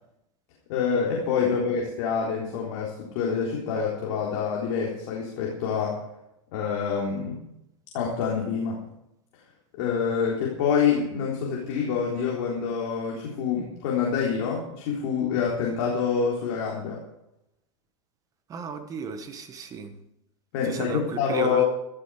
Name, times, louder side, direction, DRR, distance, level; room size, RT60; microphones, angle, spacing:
voice 1, 0.7-6.0 6.5-7.4 7.9-8.9 9.7-17.0 20.5-21.7, left 6 dB, 50° left, -3 dB, 3.8 m, -26 dB
voice 2, 18.5-19.9 20.6-21.6, right 5 dB, 20° right, 8 dB, 1.5 m, -34 dB
13.5 x 13.5 x 5.0 m, 0.82 s
supercardioid pair, 155°, 17 cm